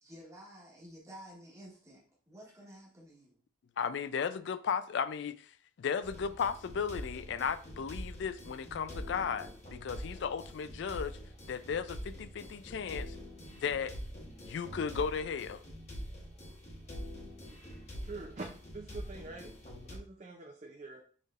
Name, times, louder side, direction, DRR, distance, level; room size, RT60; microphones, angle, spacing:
voice 1, 0.0-3.4, equal, 15° right, 1.1 m, -52 dB
voice 2, 3.8-5.5 5.8-11.2 11.5-13.2 13.6-14.0 14.4-15.6, left 6 dB, 60° left, 0.3 m, -35 dB
sound 1, 6.0-20.0, equal, 35° left, 1.1 m, -45 dB
voice 3, 18.0-19.5 19.8-21.0, right 3 dB, 35° right, 0.5 m, -45 dB
6.6 x 3.3 x 2.4 m
head